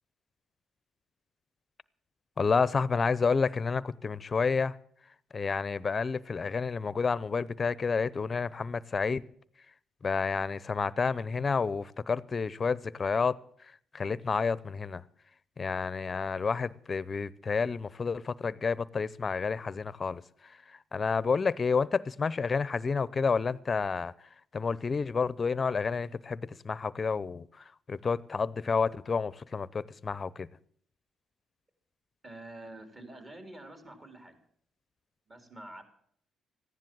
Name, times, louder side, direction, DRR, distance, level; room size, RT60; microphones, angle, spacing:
voice 1, 2.4-4.8 5.3-9.2 10.0-13.4 13.9-15.0 15.6-20.2 20.9-24.1 24.5-30.5, left 5 dB, 35° left, 0.7 m, -30 dB
voice 2, 32.2-34.4 35.3-35.8, right 1 dB, 30° right, 3.6 m, -47 dB
15.0 x 10.5 x 7.6 m
cardioid pair, 90°, 0 cm